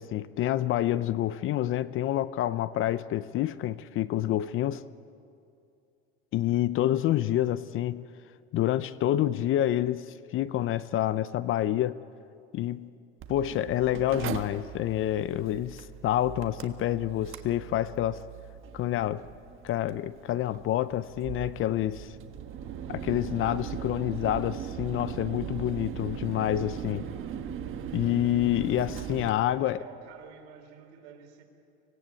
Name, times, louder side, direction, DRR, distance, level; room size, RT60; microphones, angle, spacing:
voice 1, 0.0-4.8 6.3-8.1 8.5-12.0 12.5-12.9 13.3-18.2 18.7-19.2 19.6-22.2 22.9-27.1 27.9-29.8, left 13 dB, 35° left, 0.6 m, -28 dB
Mechanical fan, 13.2-29.3, right 9 dB, 35° right, 1.5 m, -39 dB
voice 2, 26.7-27.5 29.5-31.4, right 7 dB, 70° right, 4.1 m, -50 dB
25.0 x 18.0 x 8.5 m
supercardioid pair, 130°, 34 cm